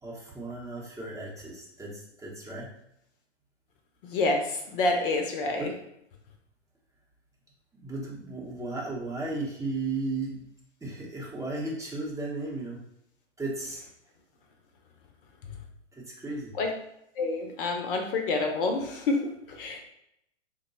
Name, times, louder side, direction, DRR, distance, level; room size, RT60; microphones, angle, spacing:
voice 1, 0.0-2.7 5.6-5.7 7.7-10.5 10.8-12.8 13.4-13.8 15.9-16.5, right 2 dB, 10° right, -4 dB, 0.8 m, -35 dB
voice 2, 4.0-5.7 16.6-16.7 17.2-19.8, left 3 dB, 50° left, 3 dB, 0.7 m, -28 dB
3.6 x 2.2 x 4.0 m, 0.78 s
hypercardioid pair, 115°, 36 cm